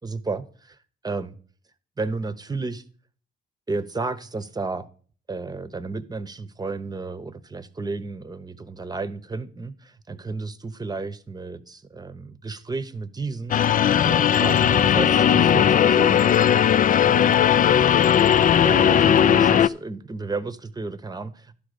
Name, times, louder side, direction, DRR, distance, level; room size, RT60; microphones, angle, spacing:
voice 1, 0.0-0.8 1.0-1.4 2.0-2.8 3.7-4.9 5.3-13.6 14.0-16.2 17.1-17.5 18.6-21.5, right 3 dB, 20° right, 13 dB, 0.9 m, -32 dB
sound 1, 13.5-19.7, left 9 dB, 45° left, 0.4 m, -17 dB
11.5 x 5.1 x 6.6 m, 0.43 s
cardioid pair, 90°, 20 cm